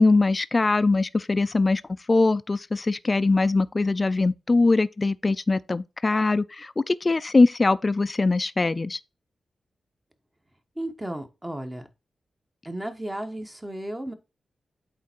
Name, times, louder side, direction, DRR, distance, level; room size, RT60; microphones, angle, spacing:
voice 1, 0.0-1.8 2.1-9.0, left 3 dB, 30° left, 0.4 m, -22 dB
voice 2, 10.8-11.9 12.6-14.1, right 1 dB, 15° right, 1.1 m, -34 dB
8.5 x 3.4 x 4.4 m
wide cardioid pair, 95°, 0 cm